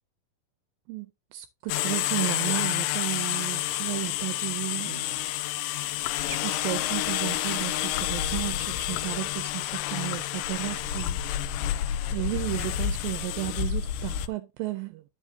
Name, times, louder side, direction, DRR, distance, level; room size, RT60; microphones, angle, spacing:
voice 1, 1.3-5.3 6.2-11.2 11.5-15.0, right 19 dB, 80° right, 2.3 m, -34 dB
sound 1, 1.7-14.3, left 12 dB, 80° left, 2.1 m, -29 dB
9.9 x 7.7 x 2.7 m
omnidirectional pair, 4.3 m